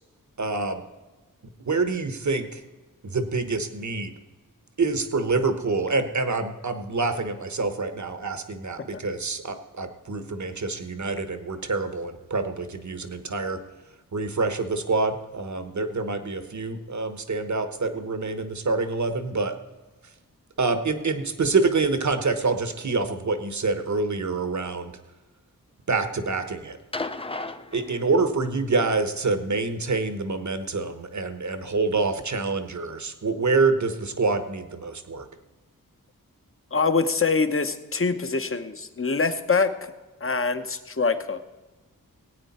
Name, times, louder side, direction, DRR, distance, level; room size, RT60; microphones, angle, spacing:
voice 1, 0.4-0.8 1.7-2.6 3.0-4.1 4.8-13.6 14.1-19.6 20.6-24.9 25.9-26.8 27.7-35.3, right 3 dB, 55° right, 9 dB, 1.2 m, -26 dB
sound 1, 26.9-28.6 29.9-30.0, left 2 dB, 15° left, 0.5 m, -35 dB
voice 2, 36.7-39.9 40.2-41.6, left 4 dB, 40° left, 10 dB, 0.9 m, -25 dB
17.5 x 9.1 x 4.3 m, 1.2 s
wide cardioid pair, 85°, 35 cm